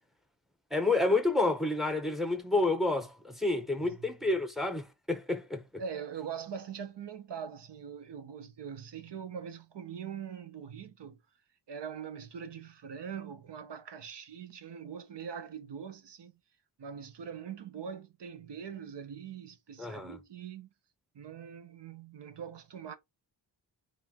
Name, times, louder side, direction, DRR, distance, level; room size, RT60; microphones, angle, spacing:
voice 1, 0.7-5.8 19.8-20.2, left 2 dB, ahead, 0.8 m, -29 dB
voice 2, 5.8-11.2 11.7-16.3 16.8-20.7 21.1-22.9, right 7 dB, 70° right, 0.9 m, -42 dB
4.4 x 2.5 x 3.7 m
cardioid pair, 85°, 44 cm